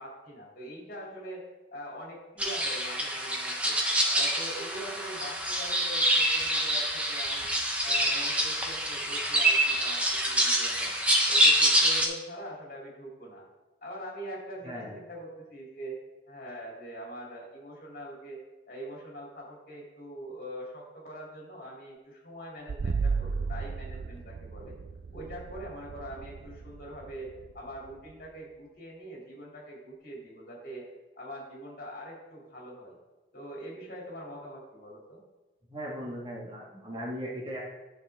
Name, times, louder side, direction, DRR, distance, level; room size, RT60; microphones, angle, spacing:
voice 1, 0.0-1.4 1.7-3.8 4.1-7.6 7.8-10.9 11.2-13.4 13.8-16.0 16.3-18.4 18.7-24.8 25.1-30.8 31.2-33.0 33.3-35.2, equal, 50° left, -3 dB, 3.0 m, -43 dB
sound 1, 2.4-12.1, right 1 dB, 5° right, 1.0 m, -26 dB
sound 2, 22.7-28.3, right 4 dB, 55° right, 0.3 m, -35 dB
voice 2, 35.7-37.6, equal, 25° right, -3 dB, 1.7 m, -38 dB
11.5 x 6.6 x 3.6 m, 1.1 s
head